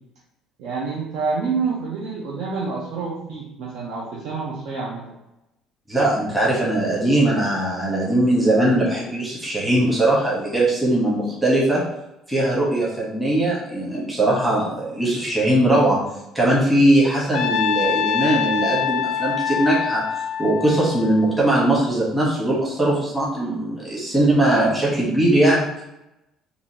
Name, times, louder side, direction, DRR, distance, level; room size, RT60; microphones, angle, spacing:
voice 1, 0.6-5.1, right 4 dB, 65° right, -4 dB, 0.8 m, -27 dB
voice 2, 5.9-11.8 12.3-16.0 16.3-20.0 20.4-25.8, right 1 dB, 5° right, -6 dB, 1.1 m, -20 dB
Trumpet, 17.3-21.6, left 8 dB, 65° left, 0.4 m, -24 dB
5.0 x 2.7 x 2.8 m, 0.89 s
cardioid pair, 160°, 0 cm